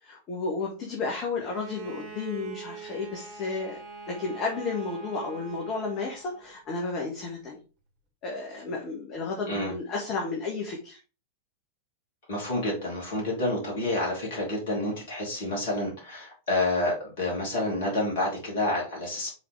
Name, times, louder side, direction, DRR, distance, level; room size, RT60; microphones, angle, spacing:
voice 1, 0.0-3.8 4.1-7.6 8.2-11.0, left 4 dB, 35° left, -1 dB, 1.6 m, -32 dB
Bowed string instrument, 1.4-6.5, right 5 dB, 40° right, 2.2 m, -43 dB
voice 2, 12.3-19.3, left 2 dB, 55° left, -2 dB, 3.3 m, -29 dB
5.5 x 4.1 x 4.8 m, 0.34 s
figure-of-eight pair, 90°, 0 cm